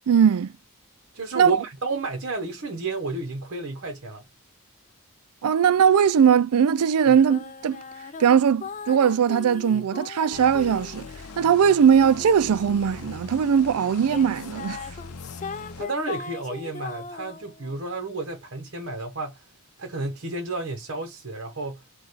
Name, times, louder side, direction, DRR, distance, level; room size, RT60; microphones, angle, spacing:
voice 1, 0.1-0.5 1.3-1.6 5.4-7.8 8.2-11.1 11.4-14.8, right 7 dB, 85° right, 0.4 m, -20 dB
voice 2, 1.1-4.2 7.1-7.2 9.7-9.8 15.8-19.4 19.8-21.8, right 2 dB, 55° right, 0.9 m, -32 dB
sound 1, 7.3-13.5 14.1-17.8, left 4 dB, 35° left, 0.4 m, -39 dB
sound 2, 10.3-15.8, left 4 dB, 85° left, 0.6 m, -41 dB
4.8 x 2.3 x 4.0 m
head